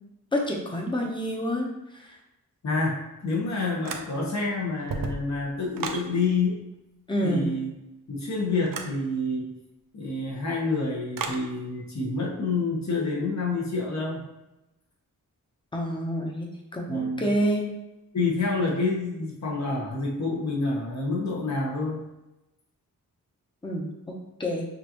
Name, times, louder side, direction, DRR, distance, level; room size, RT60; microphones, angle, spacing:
voice 1, 0.3-2.2 7.1-7.5 15.7-17.7 23.6-23.9 24.4-24.7, equal, 15° left, -1 dB, 0.9 m, -28 dB
voice 2, 2.6-6.6 7.2-7.7 8.1-9.5 9.9-14.2 16.9-17.3 18.1-22.0, left 3 dB, 55° left, -3 dB, 1.2 m, -28 dB
sound 1, 3.8-4.4 4.8-6.1 8.7-9.0 11.1-11.5, right 5 dB, 75° right, 0.6 m, -34 dB
6.5 x 2.6 x 3.0 m, 0.95 s
wide cardioid pair, 105°, 34 cm